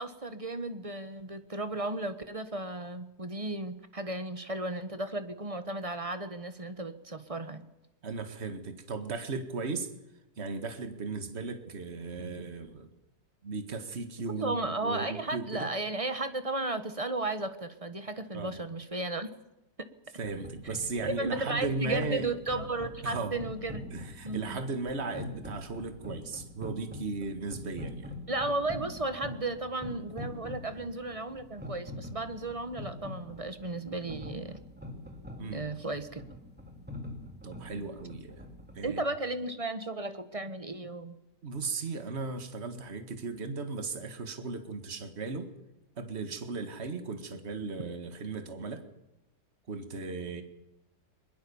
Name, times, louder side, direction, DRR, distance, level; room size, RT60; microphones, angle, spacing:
voice 1, 0.0-7.7 14.3-19.3 21.2-23.9 24.2-24.6 28.3-34.6 35.5-36.2 38.8-41.2, right 2 dB, 20° right, 10 dB, 1.4 m, -34 dB
voice 2, 8.0-9.9 10.4-12.9 13.4-15.7 18.3-18.5 20.2-22.3 23.0-23.3 23.9-28.1 35.4-35.6 37.4-38.5 38.7-39.0 41.4-45.5 46.0-48.8 49.7-50.4, right 4 dB, 40° right, 8 dB, 2.1 m, -36 dB
sound 1, 20.2-39.0, left 1 dB, 5° right, 2.6 m, -44 dB
22.0 x 21.5 x 7.2 m, 0.95 s
omnidirectional pair, 1.8 m